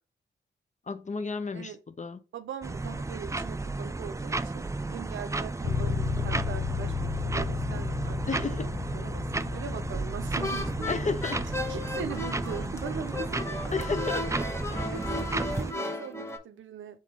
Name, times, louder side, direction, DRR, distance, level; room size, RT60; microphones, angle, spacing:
voice 1, 0.9-2.2 8.3-8.7 10.9-11.5 13.7-14.3 14.7-14.9, left 4 dB, 40° left, 0.7 m, -32 dB
voice 2, 2.3-10.9 11.7-13.7 14.9-17.0, right 7 dB, 85° right, 0.5 m, -41 dB
sound 1, 2.6-15.7, right 2 dB, 15° right, 0.4 m, -33 dB
sound 2, 5.6-15.4, left 5 dB, 75° left, 0.9 m, -35 dB
sound 3, 10.4-16.4, left 2 dB, 15° left, 1.0 m, -35 dB
3.6 x 3.2 x 4.1 m
supercardioid pair, 40°, 20 cm